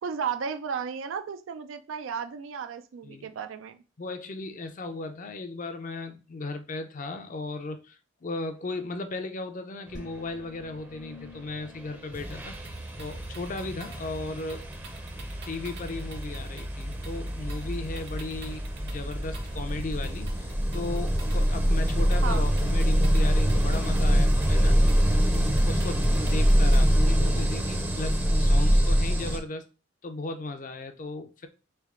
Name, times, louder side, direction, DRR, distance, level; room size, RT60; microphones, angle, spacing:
voice 1, 0.0-3.8 22.2-22.4, right 6 dB, 85° right, 0.4 m, -34 dB
voice 2, 4.0-14.7 15.4-29.7 30.0-31.5, left 2 dB, 45° left, 0.5 m, -36 dB
sound 1, 9.9-13.3, left 3 dB, 65° left, 1.0 m, -50 dB
sound 2, 11.6-11.8 12.1-29.4, equal, 10° right, 0.5 m, -25 dB
sound 3, 12.3-27.0, right 2 dB, 60° right, 1.0 m, -43 dB
3.3 x 3.1 x 3.6 m
head